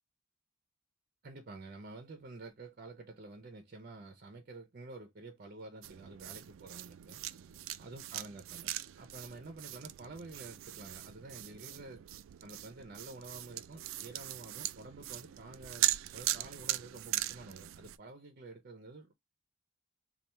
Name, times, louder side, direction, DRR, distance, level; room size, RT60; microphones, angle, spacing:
voice 1, 1.2-7.2 7.8-12.1 12.4-19.1, right 2 dB, 45° right, 0.6 m, -49 dB
sound 1, 5.8-18.0, right 14 dB, 85° right, 0.3 m, -39 dB
3.4 x 2.3 x 4.3 m
head